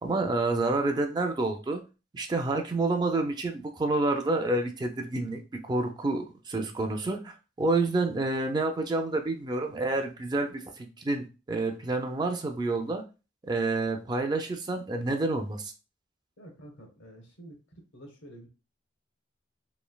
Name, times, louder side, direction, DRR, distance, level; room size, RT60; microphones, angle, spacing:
voice 1, 0.0-1.8 2.1-13.0 13.5-15.7, right 2 dB, 20° right, 5 dB, 0.3 m, -29 dB
voice 2, 16.4-18.5, right 1 dB, 85° left, 2 dB, 1.0 m, -49 dB
3.1 x 2.5 x 2.2 m, 0.31 s
head